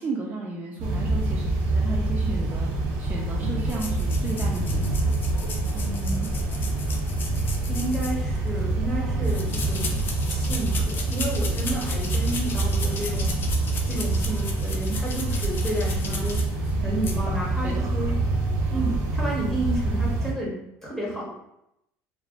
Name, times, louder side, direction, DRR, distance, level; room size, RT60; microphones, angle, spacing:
voice 1, 0.0-5.0 16.1-16.4 17.6-17.8 18.7-18.9, right 3 dB, 25° right, -3 dB, 0.4 m, -34 dB
sound 1, 0.8-20.3, right 2 dB, 80° right, 0.8 m, -26 dB
sound 2, 3.7-8.6 9.2-16.7 17.0-17.2, left 4 dB, 35° left, 0.4 m, -36 dB
voice 2, 5.7-6.3 6.8-7.0 7.7-10.0 10.3-13.3 13.9-16.4 16.8-18.1 18.7-21.3, right 1 dB, 5° left, -4 dB, 0.8 m, -31 dB
3.1 x 2.0 x 2.4 m, 0.82 s
cardioid pair, 135°, 6 cm